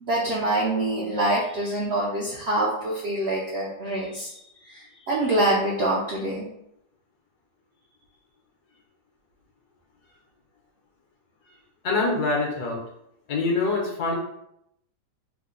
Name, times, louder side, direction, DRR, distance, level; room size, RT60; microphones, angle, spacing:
voice 1, 0.0-6.5, right 1 dB, 65° right, -5 dB, 0.6 m, -25 dB
voice 2, 11.8-12.8 13.3-14.1, left 3 dB, 70° left, 0 dB, 1.3 m, -24 dB
3.5 x 2.1 x 3.7 m, 0.78 s
omnidirectional pair, 1.8 m